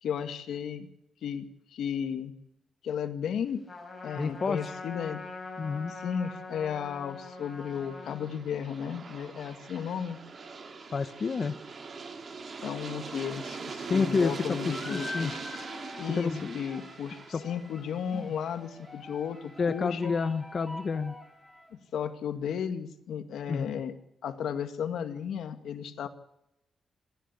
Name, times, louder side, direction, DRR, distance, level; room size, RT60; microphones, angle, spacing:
voice 1, 0.0-0.9 1.2-2.3 2.8-3.6 4.0-5.2 5.9-10.2 12.6-15.3 16.0-20.1 21.9-24.0 24.2-26.1, left 8 dB, 80° left, 8 dB, 2.0 m, -34 dB
Trumpet, 3.7-8.3, left 3 dB, 20° left, 5.9 m, -43 dB
voice 2, 4.2-4.7 5.6-5.9 10.9-11.6 13.9-15.3 16.2-16.7 17.3-17.4 18.1-18.3 19.6-21.2 23.5-23.8, left 5 dB, 35° left, 9 dB, 0.9 m, -29 dB
Aircraft, 6.9-19.7, right 4 dB, 35° right, 2.1 m, -42 dB
sound 1, 14.6-21.7, left 3 dB, ahead, 4.3 m, -45 dB
26.5 x 11.5 x 8.4 m, 0.83 s
wide cardioid pair, 175°, 0 cm